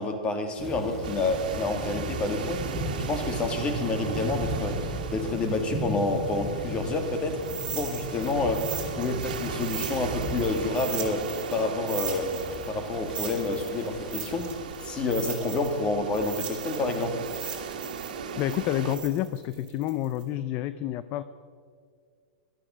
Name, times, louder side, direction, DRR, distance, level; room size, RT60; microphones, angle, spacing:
voice 1, 0.0-2.7 3.1-7.4 7.7-17.2, left 2 dB, 20° left, 6 dB, 1.8 m, -29 dB
Thunder / Rain, 0.6-14.5, equal, 5° left, 4.2 m, -36 dB
sound 1, 1.0-19.0, right 6 dB, 75° right, 1.7 m, -38 dB
sound 2, 7.4-11.6 11.9-15.8 16.1-20.2, right 8 dB, 20° right, 2.9 m, -38 dB
voice 2, 18.4-21.2, left 12 dB, 35° left, 14 dB, 0.4 m, -29 dB
13.5 x 11.5 x 6.1 m, 2.1 s
hypercardioid pair, 140°, 5 cm